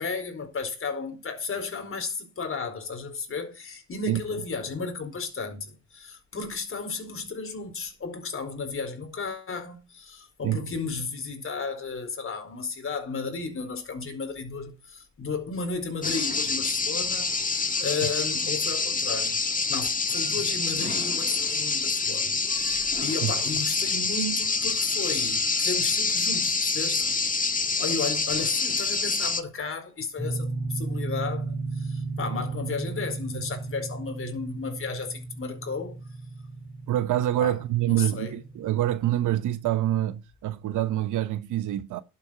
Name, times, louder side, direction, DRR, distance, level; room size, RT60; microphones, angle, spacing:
voice 1, 0.0-19.4 19.7-27.1 27.8-36.0 37.4-37.6 37.9-38.4, left 4 dB, 45° left, 4.4 m, -34 dB
sound 1, 16.0-29.4, left 4 dB, 25° left, 1.7 m, -26 dB
sound 2, 30.2-39.7, right 3 dB, 5° right, 3.0 m, -35 dB
voice 2, 36.9-42.0, right 13 dB, 80° right, 1.0 m, -26 dB
11.5 x 8.1 x 5.7 m
cardioid pair, 90°, 30 cm